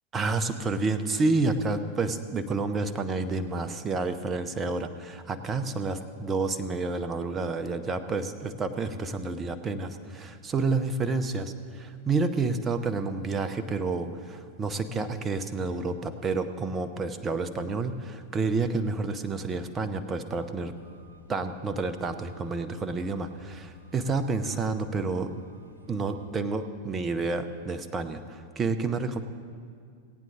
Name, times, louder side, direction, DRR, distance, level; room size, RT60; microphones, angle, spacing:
voice 1, 0.1-20.7 21.3-25.3 25.9-29.2, right 3 dB, 20° right, 10 dB, 0.7 m, -29 dB
sound 1, 18.8-26.3, left 1 dB, 80° right, 1.0 m, -53 dB
18.0 x 9.0 x 3.6 m, 2.2 s
figure-of-eight pair, 90°, 0 cm